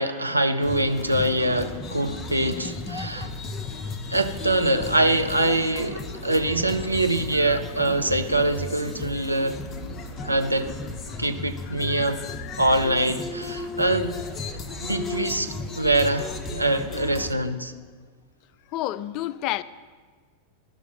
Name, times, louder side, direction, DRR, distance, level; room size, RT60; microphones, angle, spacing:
voice 1, 0.0-3.3 4.1-9.6 10.2-10.7 11.2-12.2 12.6-14.1 14.8-17.7, right 1 dB, 85° right, 7 dB, 0.6 m, -24 dB
sound 1, 0.6-17.3, left 3 dB, 25° left, 0.7 m, -35 dB
voice 2, 11.7-12.7 18.7-19.6, left 15 dB, 40° left, 17 dB, 0.3 m, -32 dB
13.5 x 6.0 x 4.0 m, 1.5 s
figure-of-eight pair, 90°, 0 cm